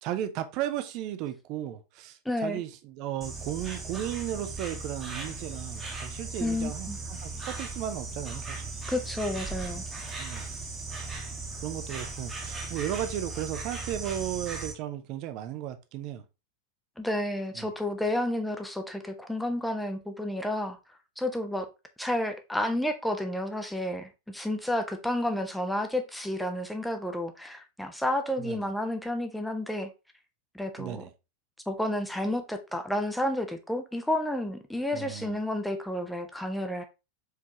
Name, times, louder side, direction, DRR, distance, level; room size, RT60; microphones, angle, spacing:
voice 1, 0.0-8.7 10.2-10.4 11.6-16.2 17.5-17.7 28.4-28.7 30.8-31.1 34.9-35.4, right 11 dB, 40° right, 0.6 m, -35 dB
voice 2, 2.2-2.6 6.4-7.0 8.9-9.8 17.0-20.8 21.2-21.7 22.0-29.9 30.5-31.0 31.7-36.8, left 1 dB, 5° left, 0.7 m, -31 dB
Insect, 3.2-14.7, right 3 dB, 15° right, 1.1 m, -37 dB
4.7 x 3.5 x 2.8 m
figure-of-eight pair, 90°, 0 cm